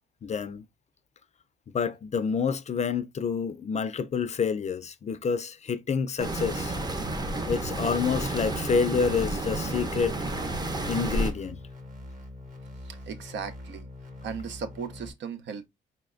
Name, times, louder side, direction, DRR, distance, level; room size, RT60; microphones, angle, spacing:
voice 1, 0.2-0.7 1.7-6.7 7.5-10.2 10.9-11.6, left 6 dB, 35° left, 0.4 m, -28 dB
sound 1, 6.2-11.3, right 2 dB, 20° right, 0.7 m, -31 dB
sound 2, 6.5-15.1, left 1 dB, 40° right, 1.5 m, -43 dB
voice 2, 12.8-13.9 14.2-15.7, right 6 dB, 65° right, 0.6 m, -37 dB
4.2 x 3.2 x 2.4 m
cardioid pair, 90°, 20 cm